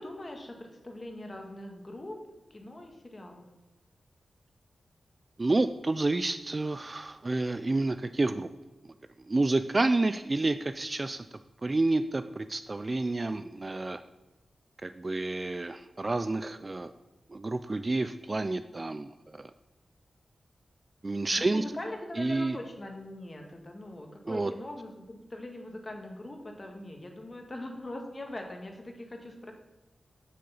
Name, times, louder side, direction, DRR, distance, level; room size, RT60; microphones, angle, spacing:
voice 1, 0.0-2.2 2.5-3.4 21.3-29.5, left 1 dB, 25° left, 3 dB, 1.6 m, -42 dB
voice 2, 5.4-8.5 9.3-11.2 11.6-14.0 14.8-16.9 17.3-19.5 21.0-21.6 22.2-22.6 24.3-24.5, right 2 dB, 30° right, 11 dB, 0.3 m, -29 dB
7.6 x 6.7 x 7.0 m, 1.1 s
wide cardioid pair, 125°, 0 cm